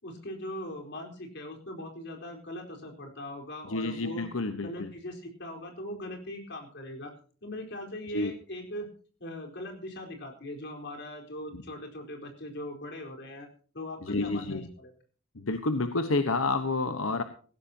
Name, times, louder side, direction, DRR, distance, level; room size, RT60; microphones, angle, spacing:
voice 1, 0.0-4.3 4.6-7.1 7.4-8.9 9.2-13.5 13.7-14.9, left 1 dB, 60° left, 3 dB, 4.4 m, -40 dB
voice 2, 3.7-4.9 8.1-8.3 11.5-11.6 14.0-14.7 15.3-17.2, left 3 dB, 85° left, 8 dB, 1.2 m, -29 dB
18.5 x 16.0 x 2.9 m, 0.42 s
head